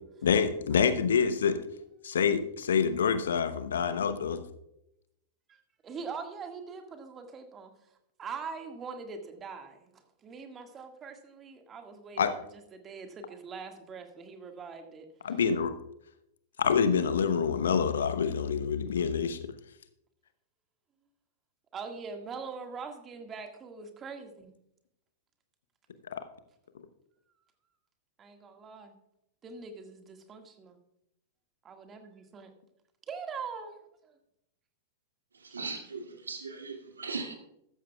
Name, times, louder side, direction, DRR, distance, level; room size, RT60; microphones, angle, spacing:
voice 1, 0.2-1.6 2.0-4.4 12.2-12.3 15.2-15.7 16.6-19.4 26.1-26.2, left 6 dB, 70° left, 12 dB, 0.9 m, -26 dB
voice 2, 5.5-7.7 8.2-15.4 21.7-24.5 28.2-28.9 29.4-30.8 31.6-32.5 33.1-34.1, right 5 dB, 25° right, 5 dB, 1.8 m, -43 dB
voice 3, 35.5-37.3, right 4 dB, 75° right, 3 dB, 2.2 m, -38 dB
14.0 x 13.5 x 2.3 m, 0.80 s
figure-of-eight pair, 95°, 0 cm